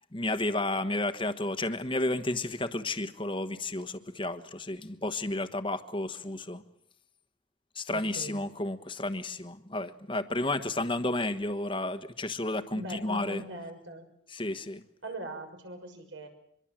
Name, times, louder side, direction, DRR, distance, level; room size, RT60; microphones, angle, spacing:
voice 1, 0.1-6.6 7.7-13.4 14.3-14.8, left 2 dB, 25° left, 10 dB, 1.3 m, -32 dB
voice 2, 7.9-8.4 12.8-14.1 15.0-16.3, right 1 dB, 75° right, 4 dB, 6.3 m, -41 dB
24.5 x 23.0 x 7.5 m, 0.69 s
head